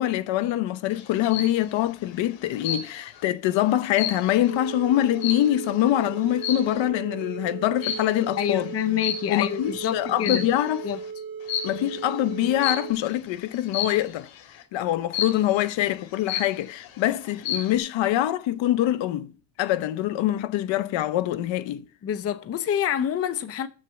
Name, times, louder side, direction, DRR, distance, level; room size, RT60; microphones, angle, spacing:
voice 1, 0.0-8.7 9.3-10.9 11.6-14.3 14.7-19.3 19.6-21.8, left 13 dB, 65° left, 0.8 m, -24 dB
sound 1, 1.0-1.6 2.6-3.2 3.6-5.8 6.4-6.8 7.8-8.2 9.0-9.6 10.1-10.8 11.5-11.8 12.6-13.0 13.7-14.1 15.1-15.6 16.0-16.1 16.3-16.9 17.3-17.8, left 8 dB, 85° left, 2.1 m, -31 dB
sound 2, 4.5-12.9, right 6 dB, 45° right, 1.6 m, -37 dB
voice 2, 8.4-10.5 10.8-11.0 22.0-23.7, left 9 dB, 30° left, 0.6 m, -27 dB
6.7 x 6.4 x 6.9 m
cardioid pair, 125°, 50 cm